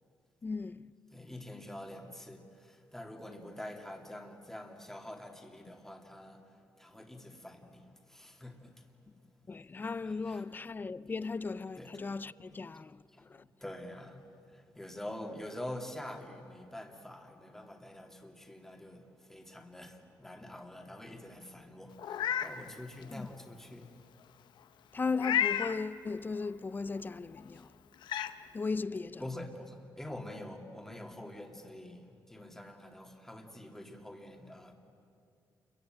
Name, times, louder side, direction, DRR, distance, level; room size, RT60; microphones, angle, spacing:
voice 1, 0.4-0.9 9.5-13.0 13.3-13.5 23.1-23.3 24.9-27.7 28.5-29.2, left 4 dB, 25° left, 0.6 m, -36 dB
voice 2, 1.1-9.1 9.3-9.4 10.0-10.4 11.8-11.9 13.1-24.0 29.2-34.7, left 1 dB, 5° left, 2.6 m, -46 dB
Meow, 22.0-22.5 23.0-23.1 25.2-25.8 27.4-27.5 28.0-28.3, left 10 dB, 80° left, 1.0 m, -31 dB
28.5 x 23.0 x 9.0 m
cardioid pair, 120°, 8 cm